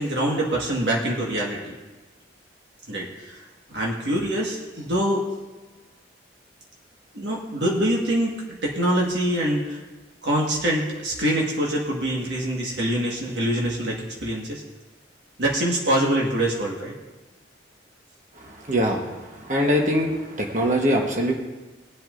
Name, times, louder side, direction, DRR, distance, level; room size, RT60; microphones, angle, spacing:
voice 1, 0.0-1.7 2.9-3.4 3.7-5.4 7.1-9.8 10.2-13.9 14.2-14.6 15.4-16.9, right 1 dB, 65° right, -3 dB, 1.7 m, -24 dB
voice 2, 18.7-19.2 19.4-21.3, equal, 40° right, 1 dB, 1.2 m, -22 dB
21.0 x 7.8 x 2.6 m, 1.2 s
head